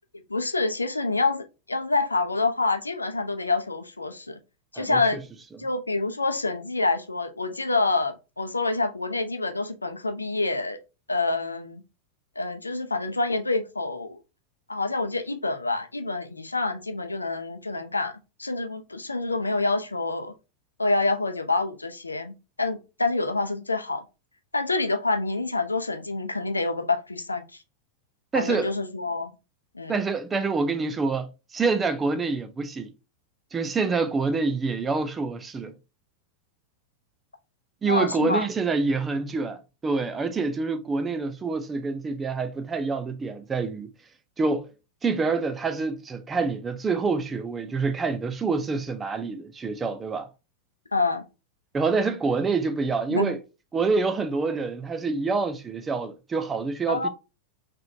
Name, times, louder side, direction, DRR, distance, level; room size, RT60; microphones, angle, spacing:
voice 1, 0.3-4.4 4.7-5.2 5.6-10.8 11.1-11.8 12.4-14.2 14.7-20.3 20.8-24.0 24.5-27.4 28.3-29.3 29.7-30.0 37.9-38.5 50.9-51.2 53.1-53.3 56.9-57.1, left 3 dB, 80° left, 0.6 m, -27 dB
voice 2, 28.3-28.7 29.9-32.9 33.5-35.7 37.8-43.9 44.4-44.7 45.0-50.3 51.7-53.4 53.7-57.1, right 4 dB, 15° right, 0.5 m, -26 dB
3.9 x 3.2 x 2.6 m
figure-of-eight pair, 90°, 0 cm